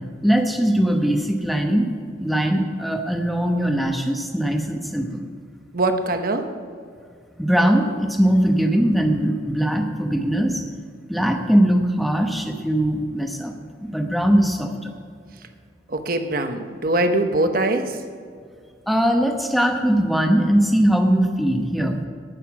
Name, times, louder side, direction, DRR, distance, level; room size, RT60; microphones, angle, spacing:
voice 1, 0.2-1.9 2.2-5.2 7.4-10.6 11.1-13.5 13.8-14.9 18.9-22.0, equal, ahead, 4 dB, 1.0 m, -20 dB
voice 2, 5.7-6.5 15.9-18.0, right 2 dB, 50° right, 7 dB, 1.0 m, -22 dB
19.0 x 6.7 x 6.1 m, 2.1 s
head